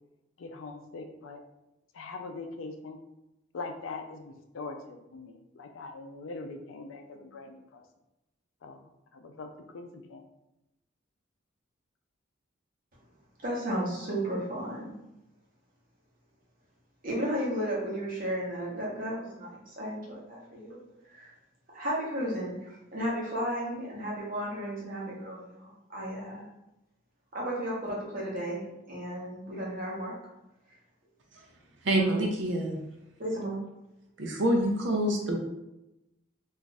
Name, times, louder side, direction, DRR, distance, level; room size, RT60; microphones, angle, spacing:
voice 1, 0.4-1.4 1.9-3.0 3.5-7.8 8.6-8.8 9.1-10.2, left 3 dB, 85° left, 5 dB, 0.4 m, -42 dB
voice 2, 13.4-14.9 17.0-20.8 21.1-21.3 21.7-26.4 27.3-30.1 33.2-33.6, equal, 45° right, -4 dB, 1.0 m, -34 dB
voice 3, 31.8-32.8 34.2-35.4, right 1 dB, 65° right, 1 dB, 0.6 m, -26 dB
2.5 x 2.3 x 3.9 m, 0.92 s
head